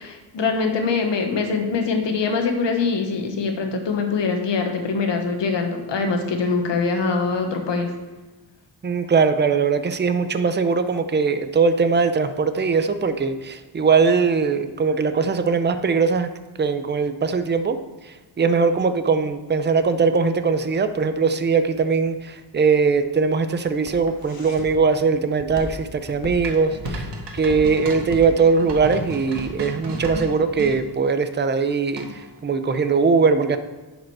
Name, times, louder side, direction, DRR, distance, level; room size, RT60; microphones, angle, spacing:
voice 1, 0.0-7.9, left 4 dB, 90° left, 4 dB, 1.3 m, -23 dB
voice 2, 8.8-16.3 16.6-17.8 18.1-27.1 27.3-32.1 32.4-33.6, right 5 dB, 25° right, 10 dB, 0.6 m, -20 dB
Walk footsteps, 23.1-30.8, left 2 dB, 55° left, 1.4 m, -36 dB
sound 1, 26.4-30.8 32.0-32.4, right 3 dB, 75° right, 1.6 m, -34 dB
10.5 x 5.1 x 4.7 m, 1.2 s
wide cardioid pair, 105°, 42 cm